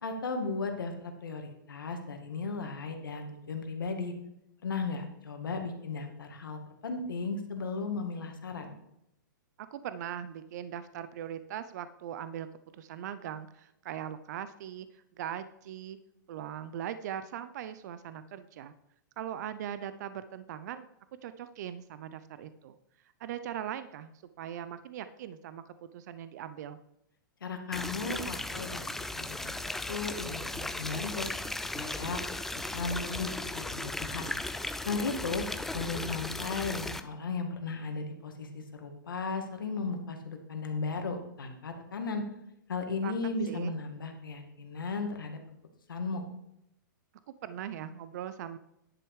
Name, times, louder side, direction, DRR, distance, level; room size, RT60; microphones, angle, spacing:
voice 1, 0.0-4.1 4.6-8.7 27.4-28.8 29.1-29.5 29.9-31.3 31.7-32.2 32.5-34.3 34.9-35.5 35.7-42.3 42.7-45.4 45.9-46.2, left 4 dB, 90° left, 4 dB, 1.9 m, -35 dB
voice 2, 9.6-12.5 12.7-16.0 16.3-18.7 19.2-20.9 21.2-22.8 23.2-26.8 43.0-43.1 43.5-43.7 47.4-48.6, right 10 dB, 55° right, 12 dB, 0.6 m, -40 dB
sound 1, 27.7-37.0, left 2 dB, 5° left, 0.4 m, -36 dB
10.5 x 6.7 x 4.8 m, 0.79 s
hypercardioid pair, 140°, 11 cm